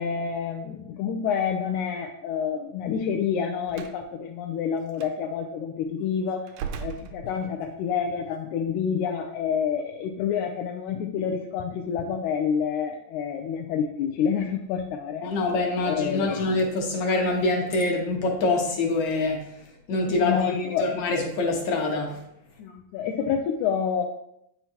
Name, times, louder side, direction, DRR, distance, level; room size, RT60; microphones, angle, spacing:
voice 1, 0.0-6.4 6.8-15.2 15.8-16.4 20.1-21.0 22.6-24.0, left 7 dB, 80° left, 1 dB, 1.9 m, -28 dB
Slam, 3.7-4.0 4.9-5.1 6.5-7.8, right 7 dB, 80° right, 1.6 m, -37 dB
voice 2, 15.2-19.5 19.9-22.2, left 2 dB, 65° left, 0 dB, 2.5 m, -25 dB
9.5 x 5.6 x 2.9 m, 0.77 s
omnidirectional pair, 3.8 m